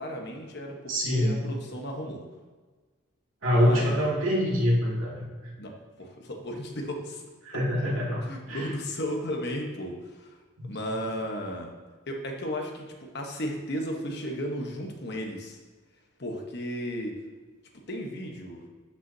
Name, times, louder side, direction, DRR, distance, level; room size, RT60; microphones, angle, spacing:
voice 1, 0.0-2.2 3.5-4.1 5.6-7.2 8.2-10.4 10.6-11.7 12.1-15.6 16.2-17.2 17.9-18.6, equal, 55° left, 2 dB, 1.1 m, -34 dB
voice 2, 0.9-1.4 3.4-5.2 7.4-8.7, equal, 80° right, -5 dB, 2.4 m, -25 dB
12.0 x 6.0 x 2.8 m, 1.3 s
head